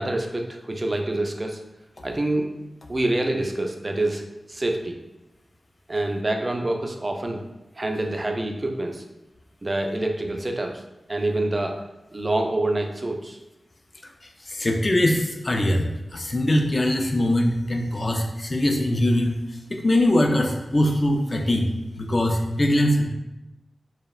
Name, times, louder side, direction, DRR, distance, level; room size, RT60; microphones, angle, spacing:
voice 1, 0.0-1.6 2.0-2.5 2.9-4.2 4.5-5.0 5.9-7.4 7.8-9.0 9.6-10.8 11.1-11.8 12.1-13.4, right 1 dB, 40° right, 3 dB, 0.3 m, -26 dB
voice 2, 14.5-19.4 19.7-21.7 22.0-23.1, left 1 dB, 45° left, 3 dB, 0.3 m, -22 dB
2.8 x 2.0 x 2.3 m, 0.97 s
cardioid pair, 45°, 0 cm